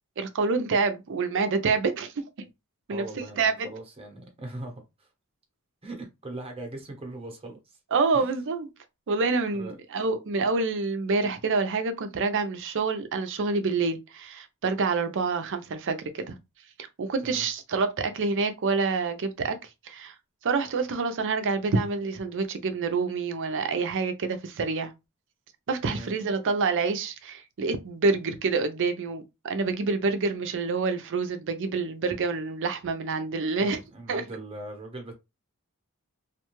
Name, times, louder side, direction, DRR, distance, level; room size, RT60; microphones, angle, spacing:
voice 1, 0.2-2.1 2.4-2.5 2.9-3.7 7.9-8.7 9.1-16.4 16.8-19.6 19.8-20.1 20.4-24.9 25.7-33.8 34.1-34.2, right 4 dB, 60° right, 0.5 m, -27 dB
voice 2, 2.9-5.1 5.8-7.8 8.1-8.3 9.5-9.8 17.2-17.5 25.8-26.1 33.6-35.1, right 2 dB, 25° right, 0.9 m, -40 dB
2.4 x 2.2 x 3.0 m
head